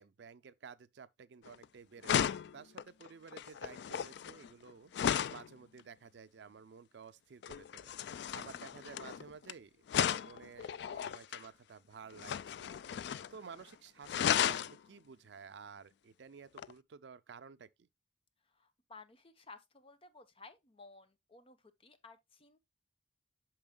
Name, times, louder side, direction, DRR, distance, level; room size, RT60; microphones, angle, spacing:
voice 1, 0.0-4.9 5.3-7.9 8.3-9.8 10.2-12.7 13.3-17.9, right 6 dB, 70° right, 0.4 m, -53 dB
sound 1, 1.5-1.6 2.0-5.5 7.4-9.5 9.9-11.4 12.2-13.4 13.6-13.7 14.0-14.7 16.6-16.7, left 9 dB, 65° left, 0.3 m, -35 dB
voice 2, 18.4-22.6, left 3 dB, 30° left, 0.8 m, -56 dB
8.7 x 6.2 x 2.2 m
head